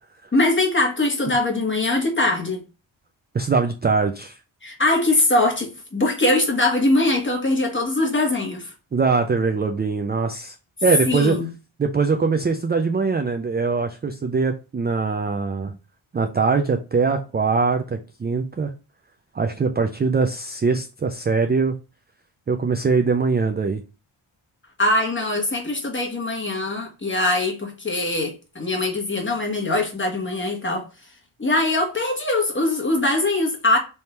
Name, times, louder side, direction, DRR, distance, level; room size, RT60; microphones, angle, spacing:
voice 1, 0.3-2.6 4.6-8.7 11.1-11.5 24.8-30.8 31.4-33.8, left 2 dB, 25° left, 1.3 m, -22 dB
voice 2, 3.3-4.4 8.9-10.6 10.8-11.4 11.8-15.8 16.1-18.7 19.3-21.7 22.5-23.8, right 4 dB, 25° right, 0.3 m, -22 dB
3.5 x 2.7 x 4.4 m
wide cardioid pair, 105°, 49 cm